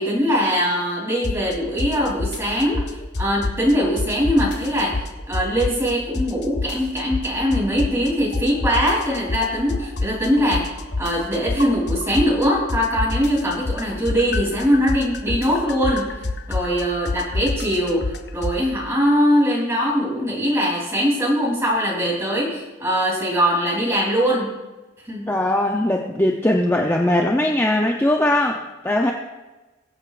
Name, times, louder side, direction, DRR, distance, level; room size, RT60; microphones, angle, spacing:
voice 1, 0.0-4.9 5.3-16.1 16.5-18.0 18.3-24.5 25.1-25.3, equal, 15° right, -4 dB, 3.2 m, -21 dB
sound 1, 1.2-1.5 1.8-3.7 4.0-5.9 6.1-8.1 8.3-12.4 12.7-18.6, left 2 dB, 60° left, 0.8 m, -26 dB
voice 2, 25.3-29.1, left 1 dB, 15° left, 1 dB, 0.6 m, -20 dB
22.5 x 8.0 x 2.5 m, 1.1 s
head